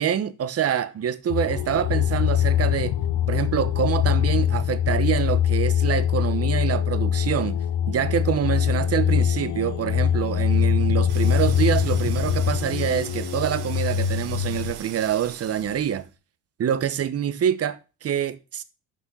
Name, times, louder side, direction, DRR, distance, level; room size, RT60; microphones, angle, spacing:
voice 1, 0.0-2.9 3.3-7.6 7.9-16.1 16.6-18.6, right 9 dB, 40° right, 0.9 m, -26 dB
sound 1, 1.3-14.7, left 9 dB, 50° left, 0.8 m, -23 dB
sound 2, 11.1-16.1, right 10 dB, 75° right, 1.2 m, -41 dB
6.2 x 5.8 x 5.6 m
supercardioid pair, 90°, 37 cm